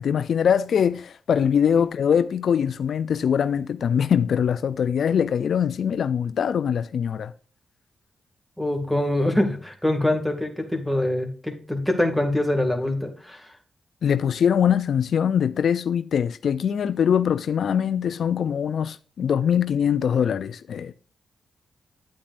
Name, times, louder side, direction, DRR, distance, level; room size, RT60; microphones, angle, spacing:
voice 1, 0.0-7.3 14.0-20.9, left 8 dB, 75° left, 0.3 m, -22 dB
voice 2, 8.6-13.5, left 1 dB, ahead, 2.1 m, -24 dB
10.0 x 8.5 x 2.5 m
cardioid pair, 60°, 0 cm